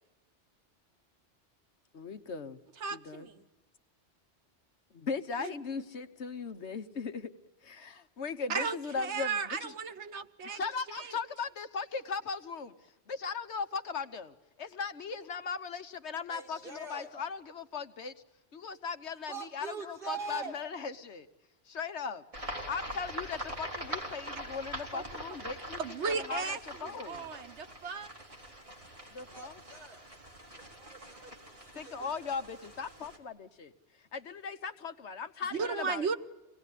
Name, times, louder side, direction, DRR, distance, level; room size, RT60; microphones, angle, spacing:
voice 1, 1.9-2.6 2.9-3.3 4.9-7.3 7.6-9.7 10.5-12.7 13.1-18.1 18.5-21.3 21.7-22.2 22.7-25.8 26.1-27.3 29.1-29.6 31.7-33.7 34.1-36.2, left 5 dB, 75° left, 10 dB, 1.4 m, -38 dB
voice 2, 2.8-3.4 5.4-5.5 8.5-10.6 10.9-11.1 24.9-25.0 25.8-28.1 35.6-36.2, right 5 dB, 75° right, 9 dB, 1.4 m, -35 dB
voice 3, 16.3-17.1 19.3-20.5 29.3-30.0 30.5-32.2, right 5 dB, 50° right, 0 dB, 3.9 m, -43 dB
sound 1, 22.3-33.2, right 1 dB, 30° right, 3.3 m, -44 dB
25.5 x 18.5 x 9.9 m, 1.1 s
omnidirectional pair, 1.2 m